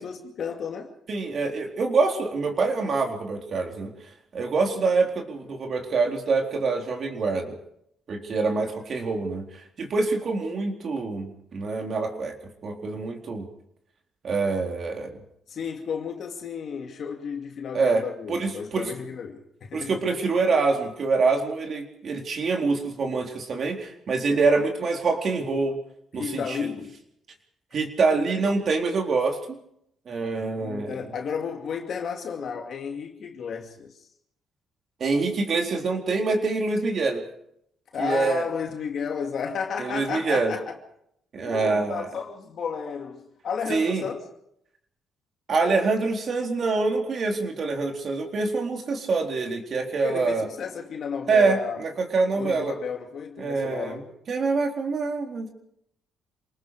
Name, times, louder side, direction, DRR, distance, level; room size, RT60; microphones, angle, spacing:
voice 1, 0.0-0.9 15.5-20.0 26.1-27.0 30.4-33.9 37.9-40.6 41.4-44.2 50.0-51.8 52.4-54.1, left 6 dB, 60° left, 2.5 m, -33 dB
voice 2, 1.1-3.9 4.3-7.6 8.1-12.3 12.6-13.5 14.2-15.2 17.7-18.0 18.3-18.9 19.7-25.8 26.1-26.7 27.7-29.6 30.1-31.0 35.0-37.2 38.0-38.5 39.8-40.5 41.3-42.1 43.7-44.0 45.5-50.5 51.3-52.7 53.4-54.0 54.3-55.5, right 4 dB, 50° right, 4.1 m, -25 dB
27.5 x 19.5 x 5.0 m
cardioid pair, 90°, 0 cm